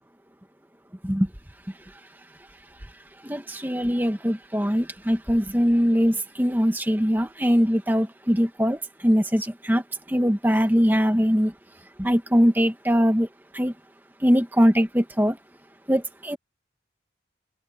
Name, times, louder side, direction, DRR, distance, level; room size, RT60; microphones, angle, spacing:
voice 1, 3.2-9.8 10.1-11.5 12.0-13.3 13.5-13.7 14.2-15.4 15.9-16.4, equal, 10° right, 1.4 m, -22 dB
head